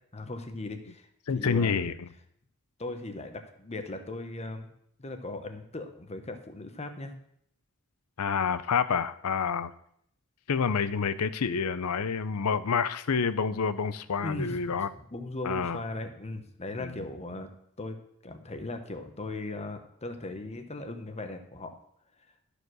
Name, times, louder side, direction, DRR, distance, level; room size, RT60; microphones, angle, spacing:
voice 1, 0.1-1.1 1.3-1.8 2.8-4.7 5.0-7.1 14.2-17.5 17.8-21.8, left 2 dB, 30° left, 7 dB, 1.1 m, -38 dB
voice 2, 1.3-1.9 8.2-9.7 10.5-14.9 15.4-15.8 16.8-17.0, left 6 dB, 85° left, 15 dB, 0.6 m, -28 dB
13.0 x 5.0 x 6.3 m, 0.71 s
head